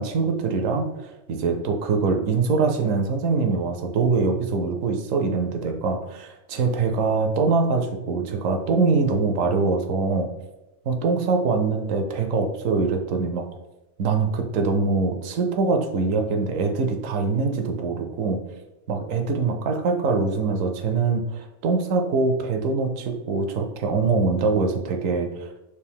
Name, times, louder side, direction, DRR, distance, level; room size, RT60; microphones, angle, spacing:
voice 1, 0.0-10.3 10.9-13.4 14.0-18.4 18.9-25.5, right 4 dB, 70° right, 5 dB, 0.9 m, -23 dB
4.7 x 2.6 x 3.5 m, 0.98 s
omnidirectional pair, 1.5 m